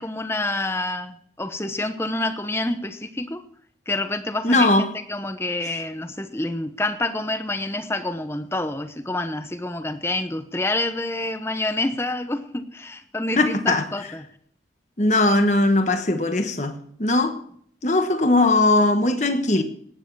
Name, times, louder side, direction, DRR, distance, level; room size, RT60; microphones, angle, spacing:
voice 1, 0.0-3.4 3.9-14.2, left 2 dB, 15° left, 0.9 m, -28 dB
voice 2, 4.4-4.9 13.4-13.9 15.0-17.4 17.8-19.6, left 2 dB, 40° left, 1.3 m, -19 dB
18.0 x 9.8 x 4.7 m
head